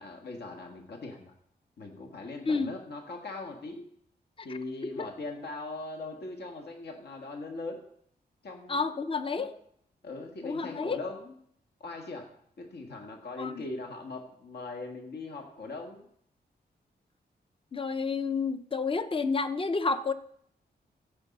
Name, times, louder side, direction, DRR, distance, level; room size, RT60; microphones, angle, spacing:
voice 1, 0.0-1.3 1.8-3.9 4.4-7.8 8.4-8.9 9.4-9.5 10.0-11.4 11.8-12.3 12.6-16.0, left 2 dB, 75° left, 3 dB, 1.7 m, -40 dB
voice 2, 8.7-9.5 10.4-11.0 13.4-13.5 17.7-20.1, left 4 dB, 30° left, 10 dB, 0.6 m, -29 dB
15.0 x 5.3 x 5.3 m, 0.68 s
wide cardioid pair, 140°, 17 cm